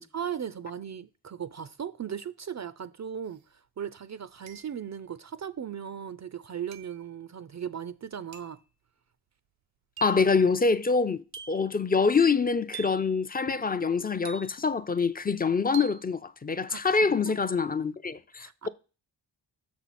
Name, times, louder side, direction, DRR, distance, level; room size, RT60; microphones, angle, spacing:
voice 1, 0.0-8.6 16.7-16.8 17.1-17.3 18.4-18.7, right 8 dB, 40° right, 0.4 m, -37 dB
sound 1, 3.3-3.4 4.5-5.0 6.7-7.1 8.3-8.6 10.0-10.3 11.3-11.8 12.7-13.1 14.3-14.8 15.7-16.1, right 9 dB, 80° right, 0.8 m, -45 dB
voice 2, 10.0-18.7, left 4 dB, 20° left, 0.5 m, -25 dB
6.4 x 6.0 x 4.2 m
cardioid pair, 70°, 44 cm